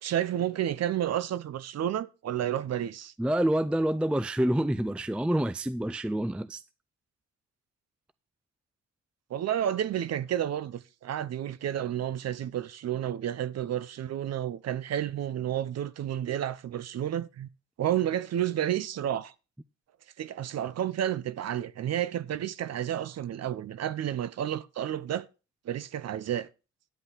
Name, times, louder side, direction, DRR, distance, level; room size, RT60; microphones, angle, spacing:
voice 1, 0.0-3.1 9.3-17.5 17.8-19.3 20.2-25.3 25.7-26.5, right 11 dB, 60° right, 0.7 m, -31 dB
voice 2, 3.2-6.6, right 1 dB, 5° right, 0.4 m, -27 dB
10.5 x 5.6 x 6.0 m
cardioid pair, 90°, 30 cm